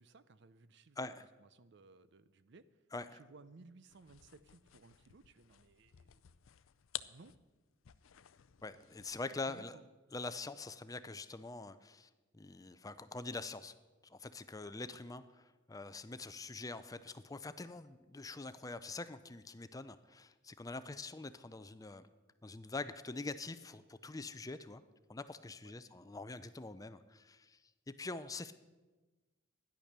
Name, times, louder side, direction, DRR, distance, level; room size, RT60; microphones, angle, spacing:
voice 1, 0.0-1.1 1.4-2.7 3.0-6.2 7.1-7.4 9.2-9.8 25.6-25.7, right 3 dB, 60° right, 14 dB, 0.6 m, -60 dB
sound 1, 3.9-9.3, left 14 dB, 90° left, 0.5 m, -52 dB
voice 2, 8.6-9.8 10.1-13.7 14.0-22.1 22.4-24.8 25.1-27.6 28.0-28.5, left 3 dB, 20° left, 12 dB, 0.5 m, -45 dB
13.0 x 10.5 x 6.7 m, 1.2 s
head